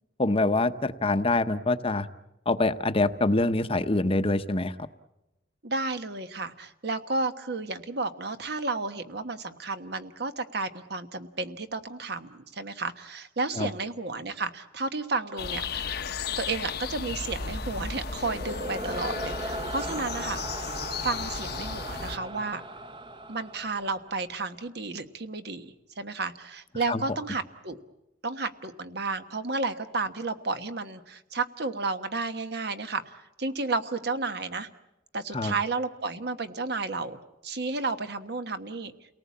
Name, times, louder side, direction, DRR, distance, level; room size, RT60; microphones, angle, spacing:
voice 1, 0.2-2.1 2.5-4.7 13.6-13.7 26.9-27.0 35.3-35.5, left 2 dB, 30° left, 11 dB, 0.8 m, -25 dB
voice 2, 5.6-16.0 16.4-20.4 21.0-22.6 23.3-27.8 28.2-34.7 35.1-38.9, right 3 dB, 60° right, 9 dB, 1.3 m, -32 dB
sound 1, 15.4-22.2, left 6 dB, 60° left, 0.9 m, -35 dB
sound 2, 17.0-24.3, right 1 dB, 25° right, 0.9 m, -37 dB
29.0 x 19.0 x 8.5 m, 0.95 s
head